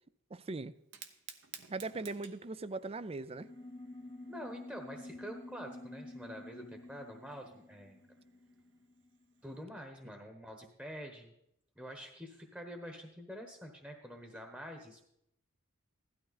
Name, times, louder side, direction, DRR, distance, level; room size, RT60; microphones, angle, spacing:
voice 1, 0.3-0.7 1.7-3.5, right 3 dB, 30° right, 16 dB, 0.5 m, -40 dB
Fire, 0.8-9.6, right 7 dB, 60° right, 1.1 m, -57 dB
sound 1, 3.3-9.2, left 2 dB, 20° left, 0.6 m, -49 dB
voice 2, 4.3-8.0 9.4-11.3 11.8-15.1, equal, 5° right, 3 dB, 1.1 m, -47 dB
16.0 x 12.5 x 4.1 m, 0.79 s
head